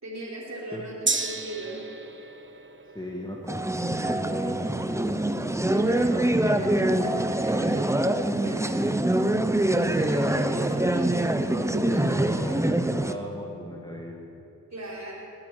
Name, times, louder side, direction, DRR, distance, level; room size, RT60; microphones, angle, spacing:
voice 1, 0.0-1.8 5.7-7.8 8.4-8.6 9.8-12.4 14.7-15.1, right 1 dB, 50° right, -6 dB, 3.7 m, -38 dB
Gong, 1.1-8.8 9.2-9.3, right 3 dB, 30° right, 1.3 m, -37 dB
voice 2, 2.9-5.1 5.9-6.3 12.4-14.2, left 1 dB, 10° left, -1 dB, 2.0 m, -38 dB
sound 1, 3.5-13.1, right 1 dB, 10° right, 0.9 m, -24 dB
20.0 x 8.8 x 8.0 m, 2.9 s
cardioid pair, 45°, 36 cm